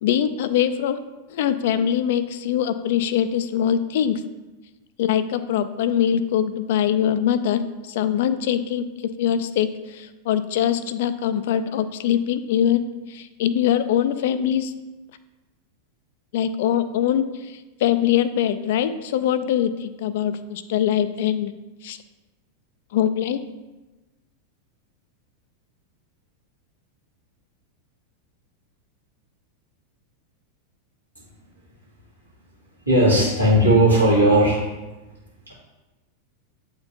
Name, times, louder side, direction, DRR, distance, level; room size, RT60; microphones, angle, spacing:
voice 1, 0.0-1.0 1.3-4.2 5.0-8.8 9.2-14.7 16.3-21.5 21.8-22.0 22.9-23.4, left 9 dB, 55° left, 12 dB, 0.3 m, -23 dB
voice 2, 32.9-34.6 35.5-35.6, right 1 dB, 85° right, -6 dB, 2.0 m, -16 dB
8.4 x 4.3 x 2.7 m, 1.1 s
figure-of-eight pair, 90°, 0 cm